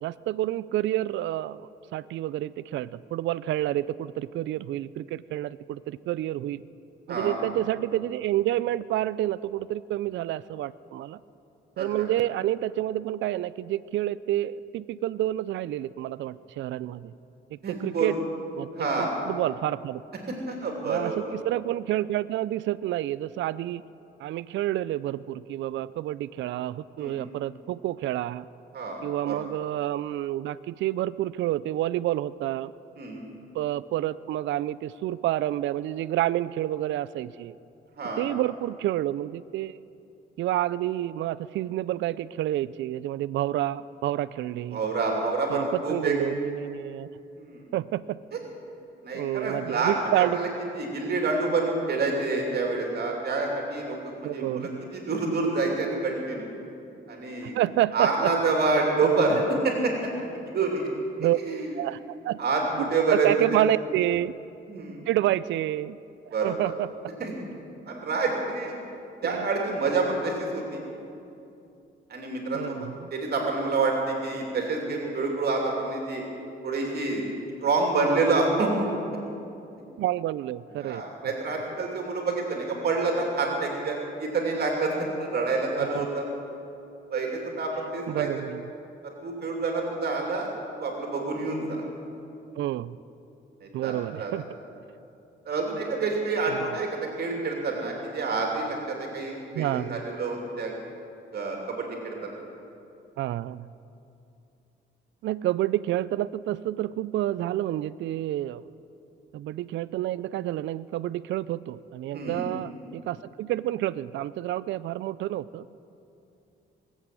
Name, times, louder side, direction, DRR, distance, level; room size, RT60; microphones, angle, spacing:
voice 1, 0.0-6.6 7.1-11.2 11.8-17.1 17.5-18.2 18.6-20.0 20.9-23.8 24.2-28.5 29.0-32.7 33.5-37.6 38.2-39.8 40.4-44.8 45.5-47.1 47.7-48.2 49.1-50.4 54.2-54.9 57.4-58.3 61.2-61.4 61.8-62.4 62.8-64.3 65.1-66.0 66.3-66.9 69.2-69.5 72.5-72.9 80.0-81.0 85.8-86.1 88.1-88.6 92.6-93.0 93.7-94.5 96.5-96.7 99.5-100.0 103.2-103.7 105.2-108.6 109.3-115.7, right 14 dB, 70° right, 17 dB, 0.4 m, -29 dB
voice 2, 11.8-12.1 17.6-18.1 18.7-19.1 20.3-21.3 27.0-27.1 28.7-29.4 33.0-33.2 38.0-38.3 44.7-46.1 47.4-47.7 48.3-48.4 49.0-50.5 50.7-56.5 57.1-57.5 57.9-60.9 61.4-61.7 62.4-63.3 64.7-65.1 66.3-66.7 67.2-67.3 67.9-68.8 69.2-70.8 72.1-72.8 73.1-76.2 76.6-77.2 77.6-78.9 80.8-86.3 87.1-88.3 89.0-90.5 90.8-91.8 93.6-94.3 95.4-100.7 101.3-102.4 112.1-112.5, right 3 dB, 55° right, 0 dB, 2.8 m, -28 dB
20.5 x 8.3 x 7.6 m, 2.7 s
cardioid pair, 90°, 20 cm